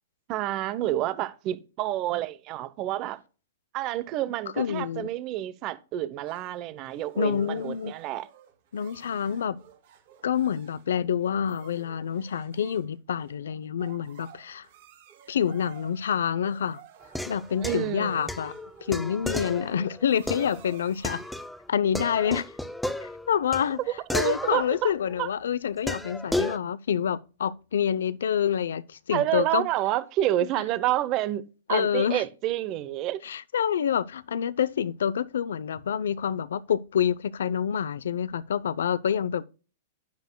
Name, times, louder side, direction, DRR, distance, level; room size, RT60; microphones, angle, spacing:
voice 1, 0.3-3.2 3.7-8.3 17.6-18.3 24.2-24.9 25.2-25.3 29.1-31.4 31.7-33.2, right 14 dB, 30° right, 0.8 m, -29 dB
voice 2, 4.6-5.1 7.2-7.9 8.7-9.6 10.2-14.7 15.3-16.8 17.3-18.5 18.8-21.2 21.7-22.5 23.0-23.8 24.1-29.7 31.7-32.2 33.2-39.5, left 8 dB, 90° left, 0.6 m, -27 dB
sound 1, 6.3-21.5, right 10 dB, 55° right, 3.1 m, -53 dB
sound 2, 17.0-21.6 21.9-25.2 25.9-26.6, left 1 dB, ahead, 0.6 m, -34 dB
10.5 x 10.5 x 2.2 m
supercardioid pair, 165°, 0 cm